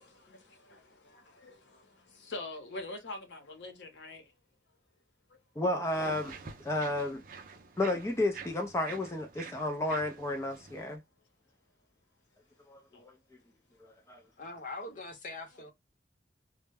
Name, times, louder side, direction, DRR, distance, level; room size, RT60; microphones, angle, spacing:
voice 1, 0.0-4.3 10.8-10.9 12.9-13.0, left 2 dB, 85° left, 0.8 m, -45 dB
voice 2, 5.6-6.4 6.6-7.2 7.8-11.0 12.7-13.1 13.8-14.2, left 1 dB, 15° left, 0.4 m, -32 dB
sound 1, 5.8-11.0, right 5 dB, 50° right, 0.4 m, -48 dB
voice 3, 14.4-15.7, left 2 dB, 45° left, 0.8 m, -42 dB
2.1 x 2.1 x 3.3 m
head